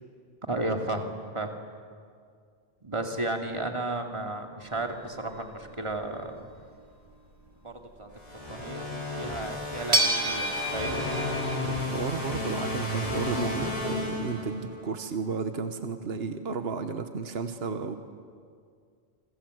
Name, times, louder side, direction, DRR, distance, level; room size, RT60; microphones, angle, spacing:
voice 1, 0.5-1.0 1.3-1.5 2.8-6.4 7.6-8.1 8.5-11.1, right 2 dB, 30° right, 3 dB, 2.5 m, -33 dB
sound 1, 4.7-6.3 9.0-9.1 9.9-11.6, right 1 dB, 90° right, 3.2 m, -28 dB
sound 2, 8.2-14.9, left 2 dB, 35° left, 6.1 m, -33 dB
voice 2, 11.6-18.0, right 4 dB, 70° right, 8 dB, 1.5 m, -33 dB
27.5 x 25.5 x 8.0 m, 2.1 s
omnidirectional pair, 1.1 m